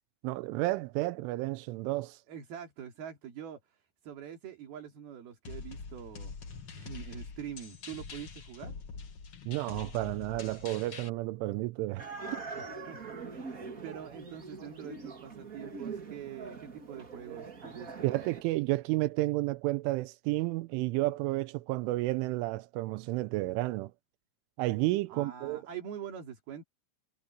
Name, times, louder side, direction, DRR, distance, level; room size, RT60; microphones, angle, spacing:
voice 1, 0.2-2.2 9.5-12.1 18.0-23.9 24.6-25.6, right 19 dB, 90° right, 3.2 m, -31 dB
voice 2, 2.3-6.4 6.8-8.8 12.5-18.2 25.1-26.6, right 9 dB, 55° right, 4.6 m, -45 dB
sound 1, 5.4-11.1, left 5 dB, 80° left, 1.2 m, -45 dB
sound 2, 12.0-18.4, right 4 dB, 75° right, 0.8 m, -43 dB
omnidirectional pair, 5.4 m